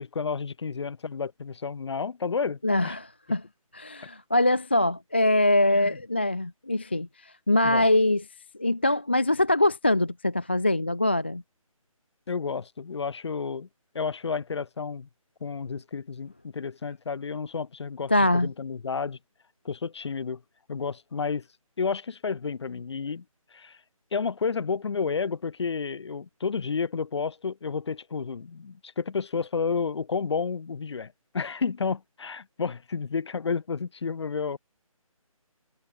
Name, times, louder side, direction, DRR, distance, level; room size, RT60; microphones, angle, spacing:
voice 1, 0.0-2.6 2.8-3.0 5.7-6.0 7.6-7.8 12.3-13.7 13.9-15.1 15.4-18.1 18.4-19.2 19.6-20.4 20.7-21.5 21.8-23.2 23.5-23.8 24.1-34.6, left 5 dB, 50° left, 2.1 m, -31 dB
voice 2, 2.6-3.4 3.7-8.2 8.6-11.4 18.1-18.5, left 1 dB, 20° left, 0.3 m, -23 dB
figure-of-eight pair, 155°, 18 cm